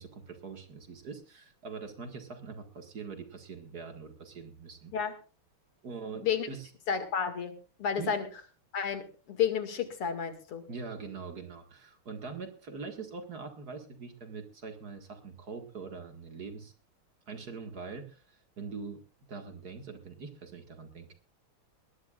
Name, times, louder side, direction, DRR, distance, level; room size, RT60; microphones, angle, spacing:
voice 1, 0.0-4.9 5.8-6.7 8.0-8.1 10.7-16.7 17.3-19.0 19.3-21.1, right 5 dB, 45° right, 5 dB, 2.2 m, -43 dB
voice 2, 6.9-7.5 7.8-8.3 8.7-10.6, left 7 dB, 85° left, 7 dB, 3.0 m, -31 dB
21.0 x 17.5 x 2.4 m, 0.35 s
omnidirectional pair, 2.4 m